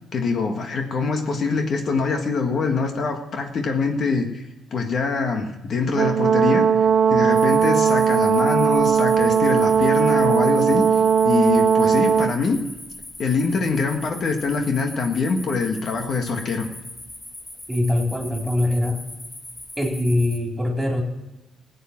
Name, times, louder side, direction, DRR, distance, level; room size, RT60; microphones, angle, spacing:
voice 1, 0.1-6.7 7.1-12.6 13.2-16.7, left 4 dB, 55° left, 4 dB, 1.6 m, -24 dB
Brass instrument, 6.0-12.3, right 7 dB, 55° right, 0.4 m, -18 dB
sound 1, 7.3-20.4, left 1 dB, 20° left, 2.3 m, -40 dB
voice 2, 17.7-19.0 19.8-21.0, left 1 dB, 10° right, 1 dB, 3.6 m, -22 dB
16.0 x 8.5 x 7.2 m, 1.0 s
cardioid pair, 90°, 0 cm